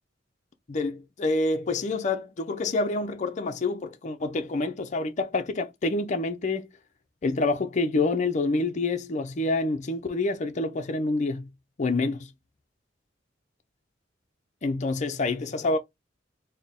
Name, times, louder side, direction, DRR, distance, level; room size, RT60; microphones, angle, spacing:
voice 1, 0.7-6.7 7.2-11.5 11.8-12.3 14.6-15.8, left 2 dB, 40° left, 0.5 m, -27 dB
4.3 x 2.1 x 3.5 m
head